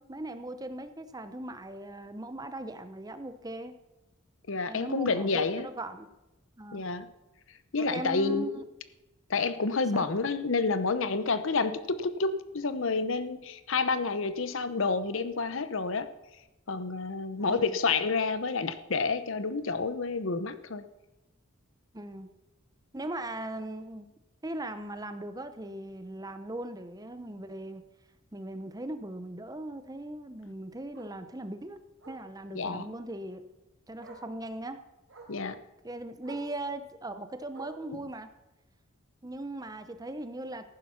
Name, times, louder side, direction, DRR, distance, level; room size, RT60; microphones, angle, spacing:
voice 1, 0.0-3.7 4.7-6.1 6.6-6.9 7.8-8.6 9.9-10.1 17.4-17.8 21.9-22.3 22.9-24.1 24.4-27.8 28.3-31.8 32.1-33.4 33.9-34.8 35.8-38.3 39.2-40.7, right 1 dB, 20° right, 10 dB, 0.8 m, -39 dB
voice 2, 4.5-5.7 6.7-7.1 7.7-8.6 9.3-16.1 16.7-20.8 32.5-32.9 35.3-35.6 37.9-38.0, left 4 dB, 65° left, 12 dB, 0.8 m, -29 dB
Bark, 24.5-24.7 25.1-25.2 25.5-25.6 25.9-26.0 27.4-27.5 30.0-30.1 30.9-31.2 32.0-32.3 33.5-33.6 34.0-34.3 35.1-35.4 36.2-36.5 37.5-37.9 38.9-39.0, right 3 dB, 65° right, 3.7 m, -50 dB
14.5 x 11.0 x 5.8 m, 0.98 s
head